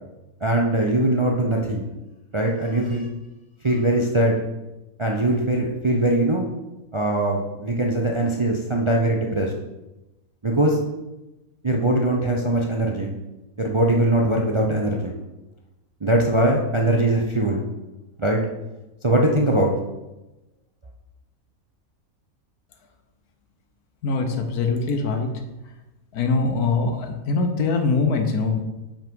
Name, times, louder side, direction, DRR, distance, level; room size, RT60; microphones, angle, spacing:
voice 1, 0.4-1.9 2.3-3.1 3.6-4.4 5.0-6.5 6.9-9.5 10.4-10.8 11.6-13.1 13.6-15.2 16.0-17.6 18.2-18.4 19.0-19.7, right 1 dB, 35° right, 0 dB, 0.5 m, -21 dB
voice 2, 24.0-25.3 26.1-28.6, left 4 dB, 85° left, 5 dB, 1.5 m, -23 dB
5.8 x 5.5 x 5.3 m, 1.0 s
omnidirectional pair, 1.6 m